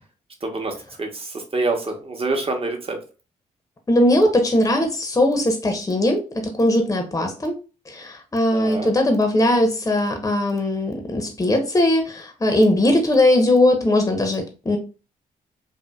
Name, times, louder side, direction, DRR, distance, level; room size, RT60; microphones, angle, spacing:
voice 1, 0.4-3.0 8.5-8.9, right 3 dB, 35° right, 3 dB, 0.9 m, -26 dB
voice 2, 3.9-6.2 6.6-7.5 7.9-14.8, left 1 dB, 20° left, 4 dB, 0.7 m, -19 dB
2.7 x 2.5 x 2.2 m, 0.34 s
hypercardioid pair, 45°, 17 cm